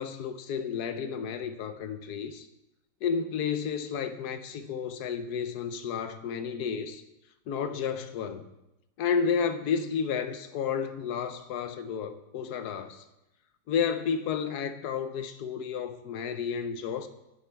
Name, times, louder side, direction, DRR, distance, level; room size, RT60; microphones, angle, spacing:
voice 1, 0.0-2.5 3.0-7.0 7.5-8.4 9.0-13.0 13.7-17.1, left 6 dB, 65° left, 1.2 m, -31 dB
11.0 x 8.2 x 4.5 m
omnidirectional pair, 2.0 m